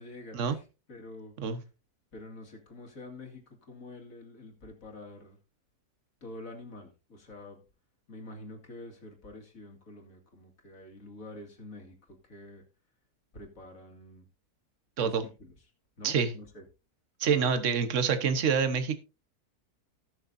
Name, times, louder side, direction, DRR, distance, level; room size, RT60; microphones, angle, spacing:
voice 1, 0.0-1.3 2.1-5.4 6.2-7.6 8.1-12.6 13.3-14.3 15.0-15.5 16.0-16.6 17.4-17.5, left 2 dB, 55° left, 3 dB, 2.7 m, -47 dB
voice 2, 17.2-19.0, right 6 dB, 55° right, 10 dB, 1.4 m, -26 dB
18.5 x 6.6 x 2.6 m, 0.30 s
omnidirectional pair, 1.7 m